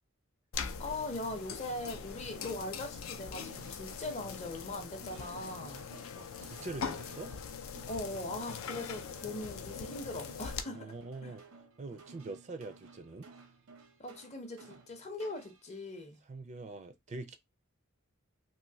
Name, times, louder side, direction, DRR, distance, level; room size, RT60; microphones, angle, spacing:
sound 1, 0.5-10.6, left 6 dB, 75° left, 0.4 m, -42 dB
voice 1, 0.8-5.8 7.9-10.9 11.2-11.4 14.0-16.2, left 2 dB, 35° left, 0.6 m, -40 dB
sound 2, 2.3-2.9 3.3-15.7, right 4 dB, 80° right, 0.7 m, -56 dB
voice 2, 6.1-7.4 10.7-11.4 11.8-13.3 16.3-17.4, right 3 dB, 35° right, 0.4 m, -44 dB
3.1 x 2.6 x 2.7 m
head